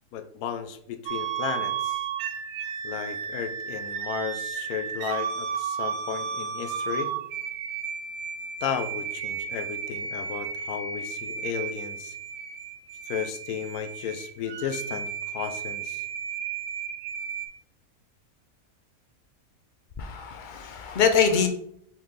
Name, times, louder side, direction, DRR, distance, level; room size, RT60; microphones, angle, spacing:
voice 1, 0.1-2.0 2.8-7.1 8.6-12.1 13.1-16.0, left 8 dB, 90° left, 9 dB, 1.1 m, -34 dB
sound 1, 1.1-17.5, right 7 dB, 70° right, 1.0 m, -33 dB
voice 2, 20.0-21.5, left 6 dB, 60° left, 6 dB, 0.5 m, -24 dB
4.4 x 3.7 x 3.2 m, 0.68 s
omnidirectional pair, 1.5 m